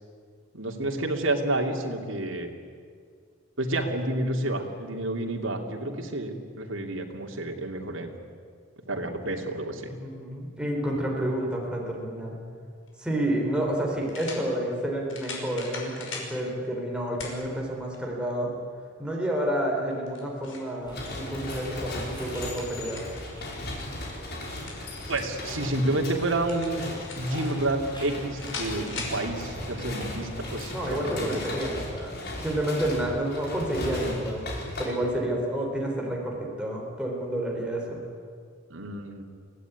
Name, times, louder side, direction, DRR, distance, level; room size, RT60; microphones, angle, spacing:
voice 1, 0.5-2.5 3.6-8.1 8.9-9.9 25.1-26.9 27.2-31.4 38.7-39.2, right 2 dB, 80° right, 2 dB, 2.9 m, -29 dB
voice 2, 9.9-12.4 13.0-18.5 19.0-23.0 30.7-32.1 32.4-38.0, right 1 dB, 5° right, -2 dB, 4.2 m, -29 dB
sound 1, 12.8-12.9 14.1-14.4 15.1-16.3 17.2-17.4 17.9-18.0 19.9-20.7 22.1-23.2 24.4-25.4 26.5-27.4 28.4-29.2, left 4 dB, 75° left, 5.7 m, -39 dB
sound 2, 20.8-32.4, equal, 25° left, 7.8 m, -49 dB
sound 3, 20.9-34.8, left 1 dB, 55° left, 5.6 m, -37 dB
24.0 x 17.0 x 9.6 m, 2.1 s
head